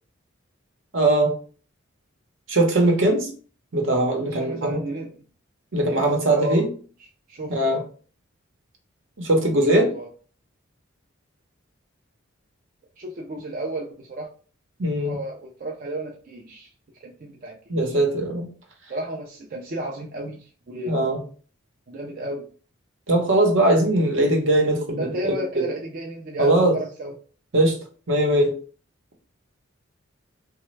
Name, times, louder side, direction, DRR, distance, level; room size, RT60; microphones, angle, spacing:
voice 1, 0.9-1.3 2.5-3.3 3.7-4.8 5.7-6.7 7.5-7.8 9.2-9.9 14.8-15.2 17.7-18.5 20.9-21.2 23.1-25.6 26.4-26.8 27.5-27.8 28.1-28.5, right 1 dB, 65° right, 2 dB, 0.9 m, -20 dB
voice 2, 4.3-5.1 5.9-6.0 6.3-6.7 7.3-7.9 9.7-10.1 13.0-14.3 15.0-16.7 17.0-18.0 18.9-21.1 21.9-22.4 25.0-27.1, right 1 dB, 45° right, -1 dB, 0.4 m, -33 dB
3.0 x 2.2 x 3.2 m, 0.40 s
head